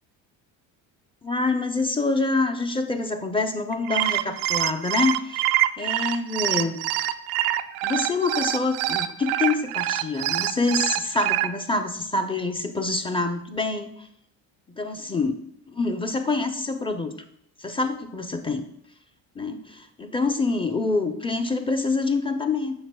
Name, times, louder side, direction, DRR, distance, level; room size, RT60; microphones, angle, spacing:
voice 1, 1.2-6.8 7.8-14.1 14.7-15.4 15.7-17.1 17.6-18.7 19.3-22.8, left 3 dB, 10° left, 6 dB, 0.8 m, -26 dB
sound 1, 3.7-11.5, right 14 dB, 85° right, 0.5 m, -25 dB
8.6 x 6.0 x 2.3 m, 0.75 s
supercardioid pair, 75°, 42 cm